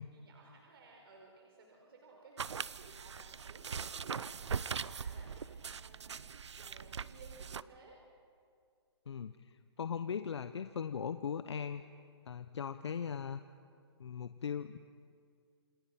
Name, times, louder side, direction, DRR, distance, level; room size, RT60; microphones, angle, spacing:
voice 1, 0.0-8.0, right 3 dB, 60° right, 0 dB, 4.7 m, -58 dB
sound 1, 2.4-7.6, right 6 dB, 85° right, 0.8 m, -41 dB
voice 2, 9.1-11.8 12.3-13.4 14.0-14.8, left 7 dB, 75° left, 10 dB, 0.9 m, -39 dB
28.5 x 24.5 x 5.9 m, 2.3 s
hypercardioid pair, 150°, 14 cm